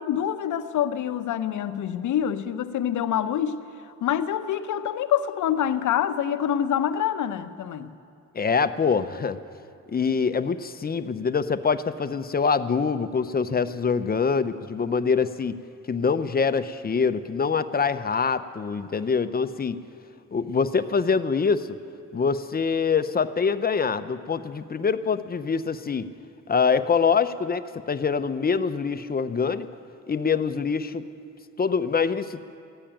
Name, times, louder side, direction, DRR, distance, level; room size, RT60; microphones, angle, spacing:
voice 1, 0.0-3.5 4.0-7.9, left 9 dB, 70° left, 11 dB, 0.8 m, -26 dB
voice 2, 8.3-9.4 9.9-15.6 15.9-19.8 20.3-21.8 22.1-26.1 26.5-27.6 27.9-29.7 30.1-31.0 31.6-32.4, left 5 dB, 30° left, 12 dB, 0.6 m, -24 dB
14.0 x 10.0 x 9.0 m, 2.5 s
cardioid pair, 70°, 31 cm